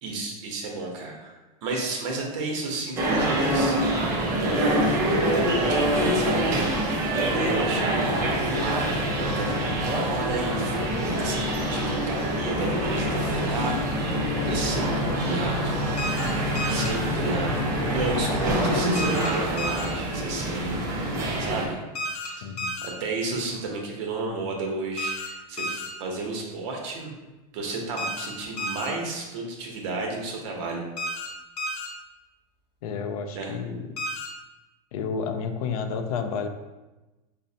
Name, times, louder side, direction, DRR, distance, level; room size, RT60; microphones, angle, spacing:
voice 1, 0.0-1.3 1.6-6.5 7.1-8.0 8.3-10.8 11.0-14.1 14.4-15.8 16.7-21.8 22.0-22.5 22.8-27.1 27.5-30.8 33.3-33.5, right 3 dB, 50° right, 0 dB, 0.8 m, -32 dB
sound 1, 3.0-21.7, right 1 dB, 15° right, 0.4 m, -26 dB
sound 2, 8.0-18.8, left 2 dB, 10° left, 0.7 m, -32 dB
sound 3, 16.0-16.3 16.6-16.9 19.0-19.3 19.6-19.9 22.0-22.3 22.6-22.9 25.0-25.3 25.6-25.9 28.0-28.3 28.6-28.9 31.0-31.3 31.6-31.9 34.0-34.3, left 1 dB, 85° left, 0.9 m, -31 dB
voice 2, 22.4-22.7 32.8-34.0 34.9-36.5, left 6 dB, 65° left, 7 dB, 0.4 m, -31 dB
5.3 x 2.0 x 2.7 m, 1.1 s
supercardioid pair, 170°, 20 cm